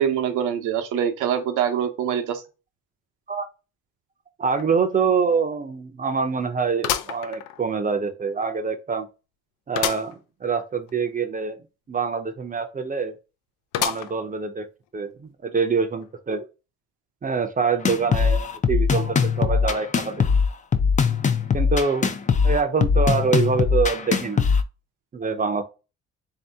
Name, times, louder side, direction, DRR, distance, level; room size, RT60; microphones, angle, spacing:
voice 1, 0.0-2.4, right 9 dB, 85° right, 0.8 m, -24 dB
voice 2, 4.4-9.1 9.7-11.6 11.9-13.2 13.8-14.7 14.9-16.5 17.2-20.2 21.5-22.1 22.4-24.5 25.1-25.6, right 5 dB, 25° right, 0.6 m, -25 dB
sound 1, 4.6-4.7 5.1-5.2 6.8-7.9 8.4-8.5 9.8-10.2 10.6-10.7 10.9-11.0 13.7-14.4 14.9-15.0 16.0-16.1, left 11 dB, 90° left, 0.5 m, -28 dB
sound 2, 17.9-24.6, left 5 dB, 25° left, 0.4 m, -21 dB
3.5 x 2.8 x 3.4 m
cardioid pair, 90°, 30 cm